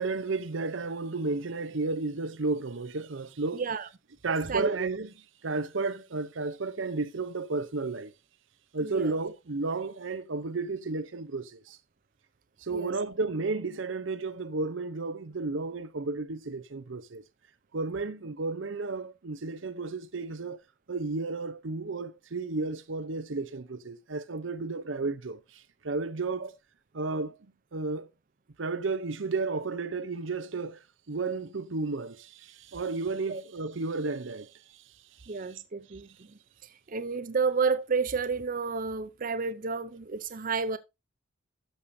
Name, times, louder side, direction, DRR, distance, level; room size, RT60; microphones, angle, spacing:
voice 1, 0.0-3.6 4.2-5.1 5.4-8.1 8.7-11.8 12.6-17.2 17.7-20.6 20.9-26.5 26.9-27.4 27.7-28.1 28.6-34.8 35.2-35.6, right 3 dB, 80° right, 0.8 m, -33 dB
voice 2, 3.5-3.9 4.5-4.8 8.8-9.1 12.7-12.9 26.4-26.5 33.3-33.4 35.3-36.3 36.9-40.8, right 5 dB, 45° right, 0.6 m, -30 dB
12.5 x 6.9 x 2.7 m
head